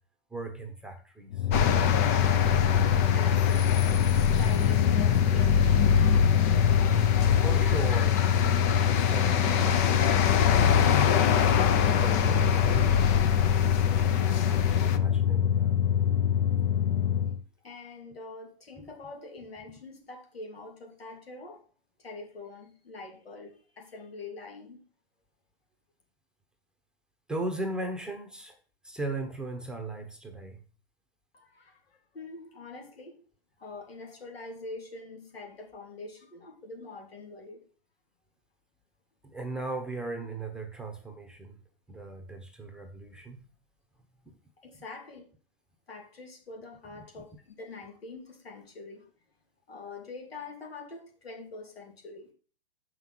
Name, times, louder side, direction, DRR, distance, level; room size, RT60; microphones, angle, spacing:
voice 1, 0.3-1.5 7.4-8.3 8.9-10.8 12.0-12.9 13.5-14.1 14.5-15.8 27.3-28.6 28.8-30.6 39.2-41.6 41.9-43.4 44.3-44.4, right 2 dB, 5° right, 0.8 m, -38 dB
sound 1, 1.3-17.4, left 9 dB, 65° left, 0.8 m, -25 dB
sound 2, 1.5-15.0, left 7 dB, 20° left, 0.3 m, -25 dB
voice 2, 3.1-3.9 4.3-6.4 17.6-21.6 22.0-24.8 31.3-33.2 33.6-37.6 44.6-45.3 45.9-49.1 49.7-52.3, left 3 dB, 90° left, 3.1 m, -44 dB
7.8 x 5.8 x 6.0 m
hypercardioid pair, 140°, 29 cm